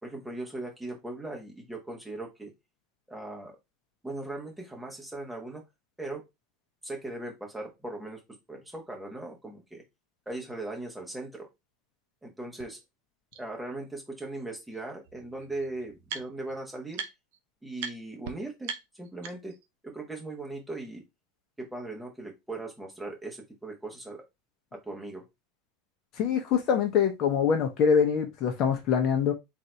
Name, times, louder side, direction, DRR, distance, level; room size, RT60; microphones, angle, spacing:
voice 1, 0.0-2.5 3.1-3.6 4.0-5.6 6.0-6.2 6.8-8.2 8.5-9.8 10.3-11.5 12.2-12.8 13.4-17.0 17.6-19.6 19.8-21.0 21.6-24.2 24.7-25.2, right 2 dB, 5° right, 0 dB, 1.3 m, -39 dB
sound 1, 12.6-12.7 13.3-13.4 14.7-14.8 15.0-16.6 16.9-17.4 17.8-17.9 18.2-18.3 18.6-19.7, right 6 dB, 70° right, 0.7 m, -39 dB
voice 2, 26.2-29.3, left 7 dB, 40° left, 4 dB, 0.9 m, -24 dB
4.0 x 2.6 x 4.4 m, 0.22 s
supercardioid pair, 145°, 0 cm